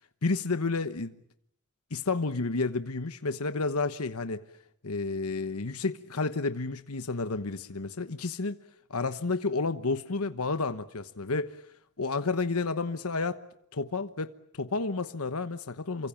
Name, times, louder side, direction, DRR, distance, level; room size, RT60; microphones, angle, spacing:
voice 1, 0.2-1.2 1.9-4.4 4.8-8.6 8.9-11.6 12.0-13.4 13.7-16.1, left 3 dB, 70° left, 1.1 m, -31 dB
29.0 x 25.0 x 7.2 m
head